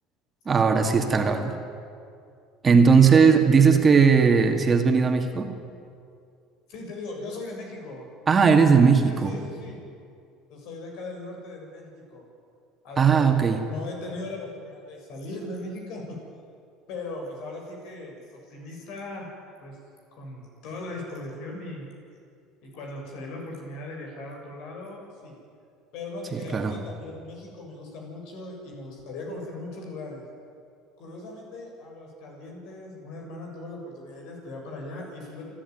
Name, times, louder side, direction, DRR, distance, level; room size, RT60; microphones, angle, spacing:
voice 1, 0.5-1.5 2.6-5.5 8.3-9.3 13.0-13.6 26.3-26.8, right 5 dB, 30° right, 4 dB, 2.4 m, -18 dB
voice 2, 6.7-8.1 9.1-9.8 10.5-12.2 12.8-16.2 16.9-19.8 20.1-21.9 22.6-25.4 25.9-30.2 31.0-35.5, left 2 dB, 65° left, 0 dB, 7.1 m, -38 dB
29.5 x 11.5 x 9.6 m, 2.4 s
hypercardioid pair, 75°, 0 cm